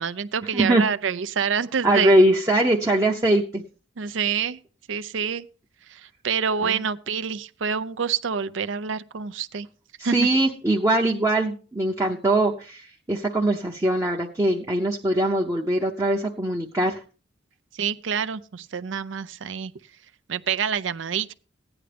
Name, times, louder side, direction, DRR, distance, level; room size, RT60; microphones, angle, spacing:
voice 1, 0.0-2.1 4.0-4.6 4.9-5.5 5.9-9.7 10.0-10.3 17.7-19.7 20.3-21.3, right 6 dB, 75° right, 0.6 m, -27 dB
voice 2, 0.5-0.9 1.8-3.6 6.6-6.8 10.0-17.0, right 1 dB, 15° right, 0.7 m, -22 dB
15.5 x 9.8 x 3.4 m
head